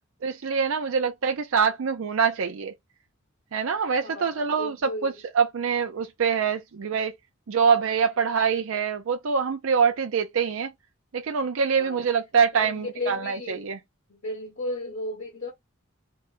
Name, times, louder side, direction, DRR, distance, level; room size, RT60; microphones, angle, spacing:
voice 1, 0.2-2.7 3.5-7.1 7.5-10.7 11.1-13.8, right 6 dB, 80° right, 0.5 m, -25 dB
voice 2, 4.0-5.2 11.7-12.1 12.5-13.7 14.1-15.5, left 1 dB, 60° left, 1.4 m, -35 dB
3.9 x 2.1 x 3.7 m
head